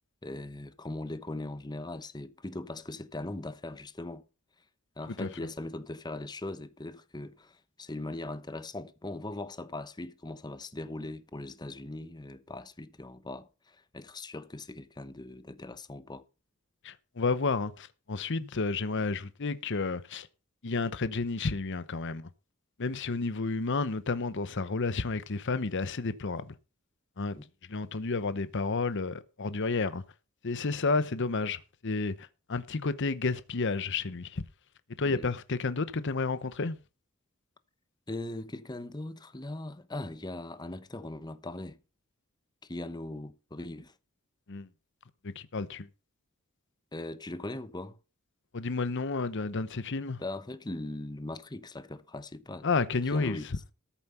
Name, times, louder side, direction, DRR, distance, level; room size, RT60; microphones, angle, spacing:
voice 1, 0.2-4.2 5.0-16.2 27.4-27.5 35.1-35.3 38.1-41.8 42.6-43.9 46.9-48.0 50.2-52.7 53.1-53.5, left 2 dB, 20° left, 0.8 m, -40 dB
voice 2, 16.8-20.3 20.6-22.3 22.8-26.5 27.2-27.4 27.7-30.0 30.4-34.4 35.0-36.8 44.5-44.7 45.2-45.9 48.5-50.2 52.6-53.4, left 3 dB, 55° left, 0.8 m, -31 dB
13.5 x 7.3 x 5.6 m
head